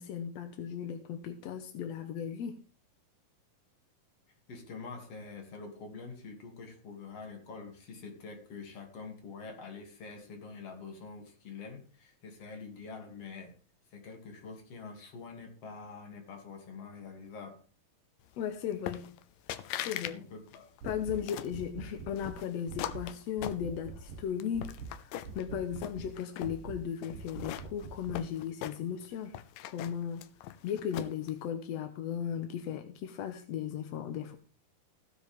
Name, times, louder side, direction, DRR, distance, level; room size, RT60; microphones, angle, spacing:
voice 1, 0.0-2.6 18.4-19.2 19.8-20.2 20.8-29.4 29.7-30.3 30.6-34.4, left 8 dB, 65° left, 1.8 m, -36 dB
voice 2, 4.5-13.6 13.9-17.6 20.1-20.7, left 4 dB, 45° left, 3.5 m, -46 dB
sound 1, 18.9-19.2 19.5-20.2 20.5-21.6 22.2-24.0 24.4-25.4 25.8-26.6 27.0-29.1 29.3-31.3, left 12 dB, 80° left, 2.3 m, -40 dB
sound 2, 20.8-21.2 21.5-22.4 22.7-23.1 23.4-24.2 24.5-24.9 25.2-26.1 26.4-26.8 27.1-28.2, right 4 dB, 70° right, 3.2 m, -44 dB
15.5 x 10.0 x 3.6 m
omnidirectional pair, 4.0 m